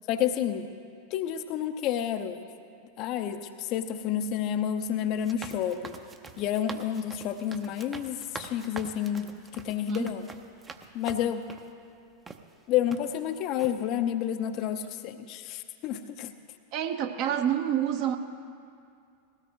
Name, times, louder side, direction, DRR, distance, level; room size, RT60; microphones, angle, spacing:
voice 1, 0.1-0.7 1.1-2.4 3.0-6.0 6.4-10.2 10.9-11.4 12.7-16.3, left 10 dB, 40° left, 8 dB, 0.7 m, -30 dB
sound 1, 5.2-11.7 12.3-12.4 12.9-13.3 13.6-13.8, right 4 dB, 15° right, 0.8 m, -44 dB
voice 2, 16.7-18.2, right 10 dB, 40° right, 6 dB, 1.0 m, -28 dB
20.0 x 16.5 x 3.0 m, 2.4 s
figure-of-eight pair, 90°, 0 cm